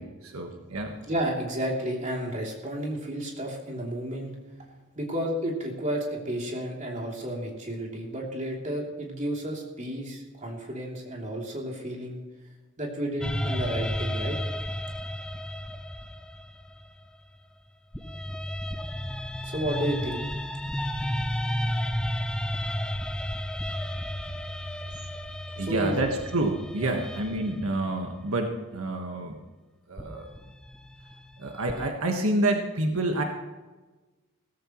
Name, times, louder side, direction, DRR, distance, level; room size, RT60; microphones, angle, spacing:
voice 1, 0.0-0.9 25.6-29.4 29.9-30.3 31.4-33.2, right 2 dB, 75° right, 3 dB, 1.5 m, -28 dB
voice 2, 1.1-4.4 4.9-12.2 12.8-14.4 19.4-20.2 25.6-26.0 26.8-27.0, right 1 dB, 35° right, -1 dB, 3.1 m, -32 dB
sound 1, 13.2-17.4 17.9-28.0 30.0-31.9, equal, 5° left, 0.6 m, -33 dB
17.0 x 14.5 x 3.1 m, 1.2 s
head